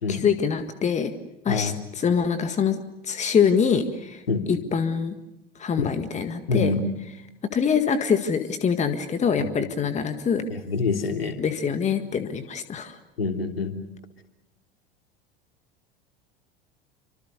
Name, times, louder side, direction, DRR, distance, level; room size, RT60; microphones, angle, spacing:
voice 1, 0.1-1.1 1.5-2.8 3.0-4.2 4.5-5.1 5.6-6.7 7.5-10.5 11.4-13.0, left 6 dB, 25° left, 9 dB, 1.8 m, -24 dB
voice 2, 6.5-6.8 9.4-9.5 10.7-11.4 13.2-13.7, left 4 dB, 75° left, 4 dB, 3.3 m, -25 dB
28.5 x 26.0 x 6.7 m, 0.91 s
figure-of-eight pair, 75°, 30 cm